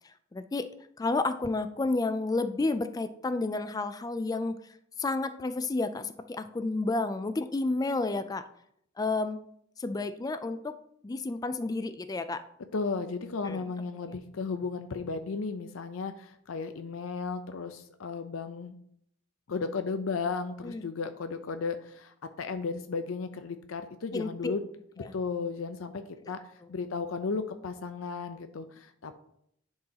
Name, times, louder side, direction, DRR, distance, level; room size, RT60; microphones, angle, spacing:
voice 1, 0.3-0.7 1.0-4.5 5.0-8.4 9.0-9.4 9.8-10.8 11.0-12.4 13.4-13.7 20.6-20.8 24.1-24.5 25.0-25.1, left 3 dB, 20° left, 10 dB, 0.3 m, -31 dB
voice 2, 12.7-18.8 19.5-24.7 25.0-26.4 26.7-29.1, left 4 dB, 80° left, 8 dB, 0.5 m, -34 dB
10.5 x 4.7 x 2.8 m, 0.71 s
head